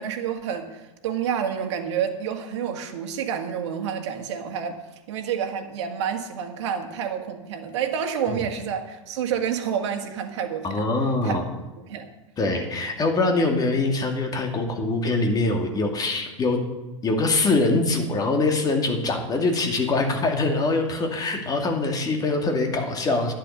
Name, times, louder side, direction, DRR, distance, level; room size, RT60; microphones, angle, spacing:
voice 1, 0.0-4.8 5.1-10.8 11.2-11.5 11.8-12.1, right 8 dB, 60° right, 5 dB, 1.8 m, -29 dB
voice 2, 10.6-11.4 12.4-16.6 17.0-23.3, left 3 dB, 20° left, 3 dB, 2.5 m, -23 dB
11.5 x 9.7 x 6.6 m, 1.0 s
hypercardioid pair, 95°, 17 cm